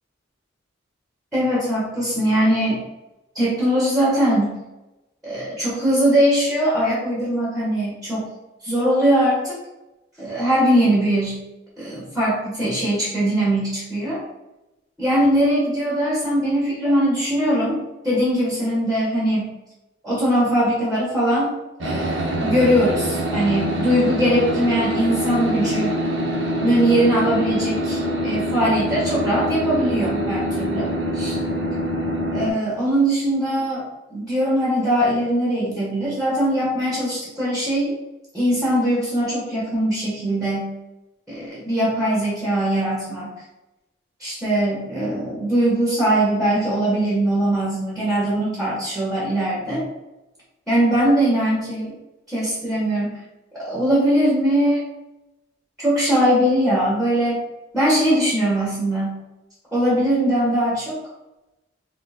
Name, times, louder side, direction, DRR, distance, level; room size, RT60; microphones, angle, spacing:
voice 1, 1.3-2.8 3.3-4.6 5.2-8.3 8.6-9.6 10.2-11.4 11.8-14.2 15.0-17.8 18.0-19.5 20.0-21.5 21.8-25.9 26.6-31.4 32.3-33.8 34.1-37.9 38.3-40.7 41.3-43.3 44.2-49.9 50.7-51.9 52.3-53.1 53.5-54.8 55.8-57.4 57.7-59.2 59.7-61.0, right 1 dB, ahead, -7 dB, 1.3 m, -21 dB
sound 1, 21.8-32.5, equal, 70° right, 1.0 m, -24 dB
3.8 x 3.2 x 4.2 m, 0.97 s
head